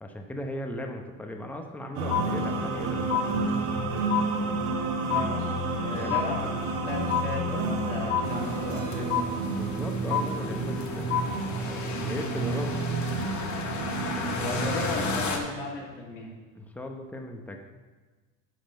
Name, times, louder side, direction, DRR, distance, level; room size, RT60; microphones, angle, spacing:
voice 1, 0.0-3.6 3.9-4.3 5.9-6.2 9.6-12.8 16.5-17.6, left 1 dB, 5° left, 4 dB, 0.9 m, -38 dB
sound 1, 1.9-15.2, right 3 dB, 70° right, 1.7 m, -30 dB
sound 2, 2.1-2.8 3.1-3.8 4.1-4.8 5.1-5.8 6.1-6.8 7.1-7.8 8.1-8.8 9.1-9.8 10.1-10.8 11.1-11.8, left 8 dB, 35° left, 1.5 m, -30 dB
voice 2, 5.1-5.5 5.8-6.5 6.8-9.2 14.4-16.3, left 3 dB, 85° left, -3 dB, 2.9 m, -35 dB
sound 3, 8.2-15.4, left 4 dB, 50° left, 1.5 m, -35 dB
10.5 x 4.3 x 6.5 m, 1.3 s
supercardioid pair, 95°, 37 cm